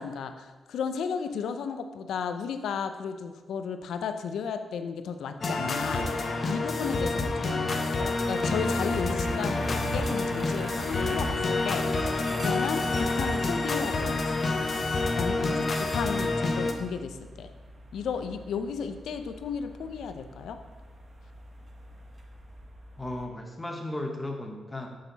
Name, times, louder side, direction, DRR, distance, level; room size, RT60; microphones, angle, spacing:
voice 1, 0.0-14.5 15.2-17.5 17.9-20.6, left 6 dB, 85° left, 8 dB, 0.5 m, -34 dB
sound 1, 5.4-16.7, left 2 dB, 45° left, 0.8 m, -28 dB
sound 2, 8.2-23.3, right 1 dB, 35° right, 0.9 m, -44 dB
voice 2, 23.0-24.9, left 1 dB, 15° left, 2 dB, 1.1 m, -35 dB
6.5 x 5.8 x 4.0 m, 1.3 s
cardioid pair, 90°, 0 cm